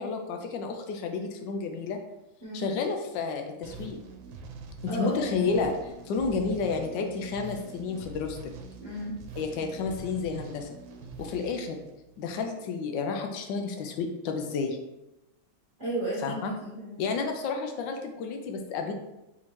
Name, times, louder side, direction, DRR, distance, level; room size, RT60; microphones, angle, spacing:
voice 1, 0.0-2.0 2.5-4.0 4.8-8.4 9.3-10.7 11.2-11.8 12.2-14.8 16.2-16.5 17.0-18.9, left 4 dB, 75° left, 4 dB, 1.2 m, -31 dB
sound 1, 3.6-12.5, right 4 dB, 80° right, 1.4 m, -44 dB
voice 2, 4.9-5.4 8.8-9.2 15.8-17.0, right 1 dB, 40° right, -8 dB, 1.1 m, -33 dB
4.2 x 3.7 x 3.0 m, 0.94 s
omnidirectional pair, 2.2 m